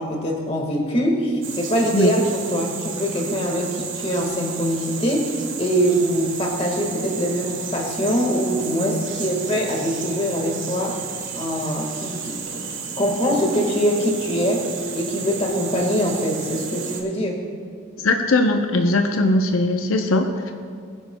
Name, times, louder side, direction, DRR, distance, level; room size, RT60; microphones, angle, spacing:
voice 1, 0.0-2.2 2.5-11.0 11.3-17.4, equal, 30° left, 1 dB, 1.7 m, -23 dB
sound 1, 1.4-17.0, right 6 dB, 70° right, 1.4 m, -33 dB
voice 2, 18.0-20.5, left 2 dB, 90° left, 4 dB, 0.8 m, -19 dB
21.0 x 10.0 x 2.3 m, 2.1 s
head